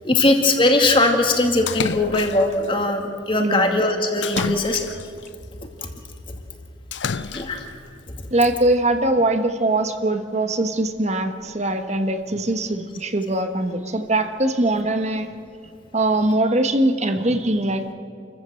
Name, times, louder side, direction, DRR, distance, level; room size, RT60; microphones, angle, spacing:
voice 1, 0.0-4.8 7.1-7.7 8.2-8.3, left 2 dB, 25° left, 3 dB, 2.2 m, -20 dB
Splash splatter, 1.7-2.7 4.2-5.3 6.9-7.7, left 5 dB, 70° left, 0.6 m, -29 dB
voice 2, 3.4-3.8 8.3-15.3 15.9-17.9, right 1 dB, 35° right, 7 dB, 1.3 m, -22 dB
28.5 x 15.0 x 7.7 m, 2.5 s
head